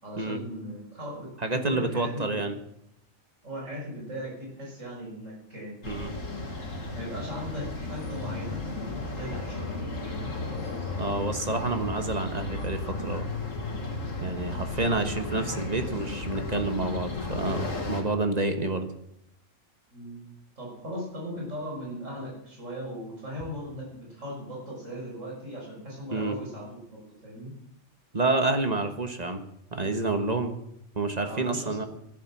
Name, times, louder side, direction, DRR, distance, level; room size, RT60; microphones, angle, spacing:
voice 1, 0.0-2.4 3.4-5.7 6.9-10.3 19.9-20.3 20.6-27.5 31.2-31.9, equal, 65° right, -2 dB, 6.5 m, -38 dB
voice 2, 1.4-2.6 5.9-6.2 11.0-13.2 14.2-18.9 26.1-26.4 28.1-29.4 29.7-30.6 30.9-31.9, right 2 dB, 30° right, 6 dB, 1.4 m, -28 dB
sound 1, 5.8-18.0, left 3 dB, 70° left, 2.6 m, -34 dB
14.5 x 11.5 x 7.3 m, 0.76 s
omnidirectional pair, 1.4 m